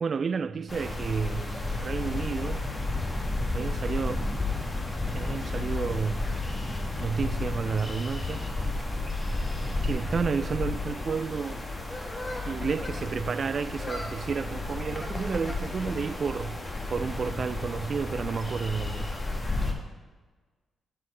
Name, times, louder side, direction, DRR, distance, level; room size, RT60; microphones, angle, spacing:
voice 1, 0.0-2.6 3.5-4.2 5.1-6.3 7.0-8.4 9.8-11.6 12.5-16.6 16.9-19.1, right 5 dB, 55° right, 0.3 m, -31 dB
sound 1, 0.7-19.7, left 2 dB, 30° left, 1.3 m, -32 dB
11.0 x 4.6 x 4.3 m
hypercardioid pair, 40°, 0 cm